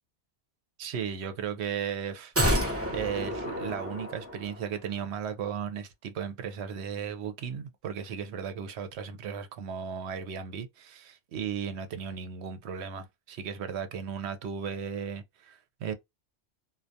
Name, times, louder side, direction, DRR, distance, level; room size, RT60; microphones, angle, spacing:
voice 1, 0.8-15.9, right 7 dB, 75° right, 0.8 m, -36 dB
sound 1, 2.4-4.7 5.0-5.1, equal, 15° right, 0.6 m, -29 dB
2.3 x 2.1 x 2.6 m
omnidirectional pair, 1.1 m